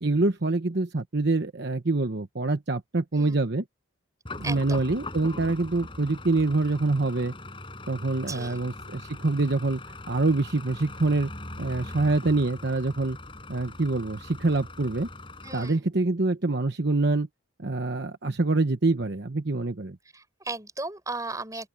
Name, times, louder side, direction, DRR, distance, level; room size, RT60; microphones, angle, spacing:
voice 1, 0.0-3.6 4.4-7.3 7.9-11.3 11.6-13.2 13.5-15.1 15.5-17.3 17.6-20.0, right 2 dB, 55° right, 1.0 m, -25 dB
sound 1, 4.3-15.7, left 2 dB, 25° left, 4.8 m, -41 dB
voice 2, 4.4-4.8 8.2-8.6 15.4-15.9 20.1-21.7, right 3 dB, 15° right, 5.9 m, -36 dB
open air
head